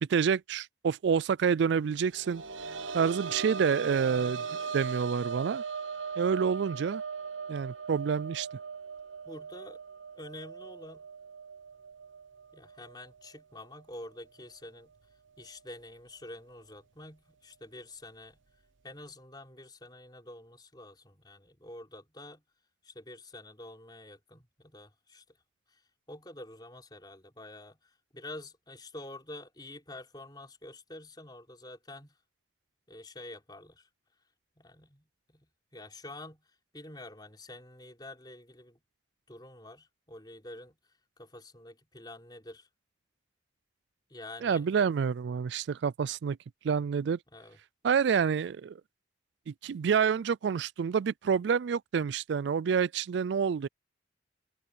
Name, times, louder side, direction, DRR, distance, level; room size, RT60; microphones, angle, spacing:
voice 1, 0.0-2.4 2.9-4.4 4.7-5.6 6.2-7.0 7.5-8.5 44.4-46.4 46.6-47.2 47.8-48.8 49.5-53.7, right 6 dB, 65° right, 0.3 m, -28 dB
sound 1, 1.9-13.4 13.7-13.8 15.4-15.5, right 5 dB, 80° right, 1.0 m, -39 dB
voice 2, 9.2-9.8 10.2-11.0 12.5-14.9 15.4-18.4 18.8-22.4 22.8-25.2 25.7-25.8 26.1-32.2 32.9-33.9 34.6-36.4 36.7-38.8 39.3-40.8 41.2-42.7 44.1-44.7 47.3-47.6, left 1 dB, 20° left, 4.7 m, -47 dB
open air
head